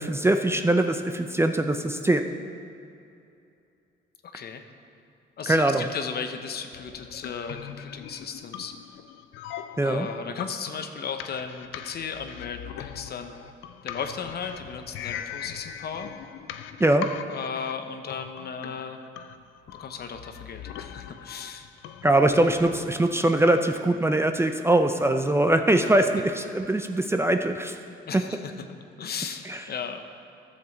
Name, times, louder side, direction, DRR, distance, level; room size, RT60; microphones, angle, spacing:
voice 1, 0.0-2.2 5.5-5.9 9.8-10.1 16.8-17.1 22.0-27.8 29.5-29.6, right 1 dB, 15° right, 6 dB, 0.5 m, -22 dB
voice 2, 4.2-4.6 5.4-8.8 9.8-13.3 13.8-16.1 17.3-19.0 19.7-21.7 25.8-26.0 28.1-28.5 29.0-30.0, left 6 dB, 55° left, 7 dB, 0.8 m, -35 dB
sound 1, 6.7-22.9, left 10 dB, 90° left, 0.5 m, -41 dB
13.5 x 7.0 x 4.0 m, 2.7 s
cardioid pair, 90°, 20 cm